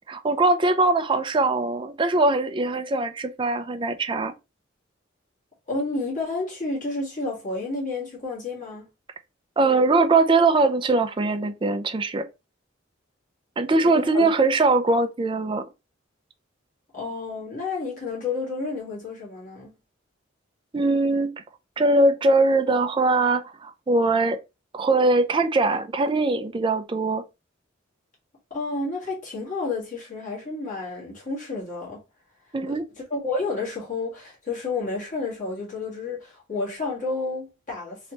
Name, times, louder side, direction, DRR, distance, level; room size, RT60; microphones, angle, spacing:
voice 1, 0.1-4.3 9.6-12.3 13.6-15.6 20.7-21.3 21.8-24.4 24.7-27.2 32.5-32.9, right 2 dB, 25° right, 0.4 m, -21 dB
voice 2, 5.7-8.9 13.8-14.3 16.9-19.7 28.5-32.0 32.7-32.8 33.1-38.1, left 3 dB, 40° left, 1.6 m, -30 dB
3.2 x 2.9 x 2.9 m
head